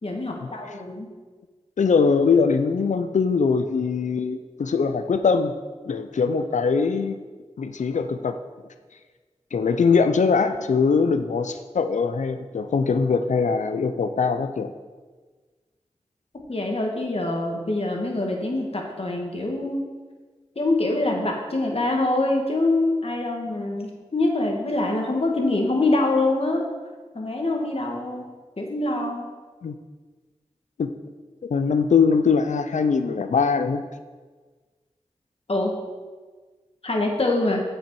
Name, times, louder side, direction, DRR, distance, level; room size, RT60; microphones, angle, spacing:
voice 1, 0.0-1.1 16.5-19.8 20.5-26.6 27.1-28.3 28.6-29.3 35.5-35.7 36.8-37.6, left 2 dB, 55° left, 1 dB, 1.5 m, -24 dB
voice 2, 1.8-5.5 5.9-7.2 7.6-8.4 9.5-14.7 29.6-29.8 30.8-30.9 31.5-33.8, left 5 dB, 80° left, 9 dB, 0.5 m, -22 dB
7.2 x 6.1 x 4.7 m, 1.4 s
cardioid pair, 45°, 12 cm